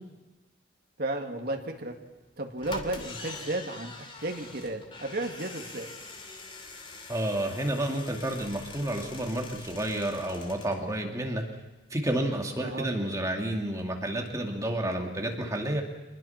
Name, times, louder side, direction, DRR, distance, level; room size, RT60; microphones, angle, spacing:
voice 1, 1.0-2.0 2.4-5.9 12.6-12.9, right 2 dB, 55° right, 2 dB, 2.3 m, -33 dB
sound 1, 1.9-2.0 2.6-10.8 11.1-11.2 11.4-11.5, left 3 dB, 30° left, 2.6 m, -44 dB
voice 2, 7.1-11.4 11.9-15.8, right 1 dB, 15° right, 1 dB, 2.5 m, -30 dB
26.5 x 20.5 x 5.9 m, 1.1 s
head